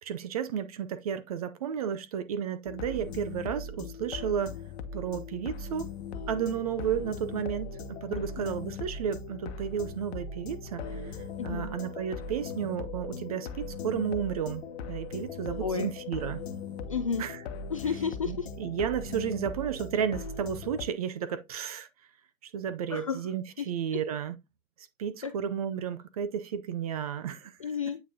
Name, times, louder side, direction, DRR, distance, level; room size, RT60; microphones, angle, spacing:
voice 1, 0.0-4.5 4.9-5.9 6.3-11.2 11.4-14.6 14.9-16.4 17.2-17.4 18.2-21.9 22.4-24.4 25.0-27.5, right 8 dB, 25° right, 0.6 m, -32 dB
sound 1, 2.7-20.9, left 4 dB, 50° left, 1.2 m, -39 dB
voice 2, 11.4-11.7 15.6-15.9 16.9-17.2 17.7-18.5 22.9-23.2 25.2-25.3 27.6-28.0, left 6 dB, 25° left, 0.4 m, -31 dB
8.8 x 5.6 x 2.8 m
hypercardioid pair, 145°, 42 cm